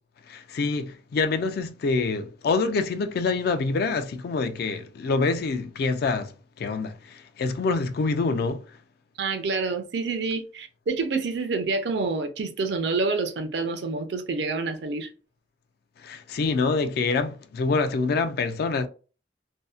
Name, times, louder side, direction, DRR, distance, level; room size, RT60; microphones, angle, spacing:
voice 1, 0.3-6.3 6.6-8.6 16.0-18.9, left 4 dB, 60° left, 0.3 m, -26 dB
voice 2, 9.2-15.1, right 4 dB, 70° right, 0.5 m, -27 dB
2.6 x 2.0 x 2.3 m
head